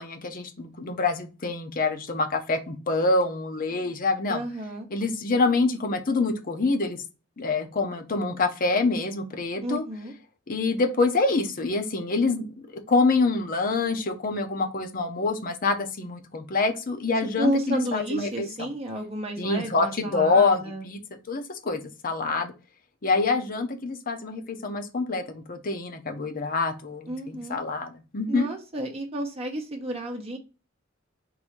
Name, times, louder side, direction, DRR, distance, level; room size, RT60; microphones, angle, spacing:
voice 1, 0.0-4.4 4.9-7.0 7.4-9.9 10.5-18.7 19.4-21.0 21.3-22.5 23.0-28.5, left 3 dB, 45° left, 0.7 m, -26 dB
voice 2, 4.3-4.9 9.6-10.1 17.4-20.9 27.1-27.6 28.3-30.4, right 1 dB, 30° right, 0.9 m, -31 dB
3.8 x 2.7 x 4.5 m
head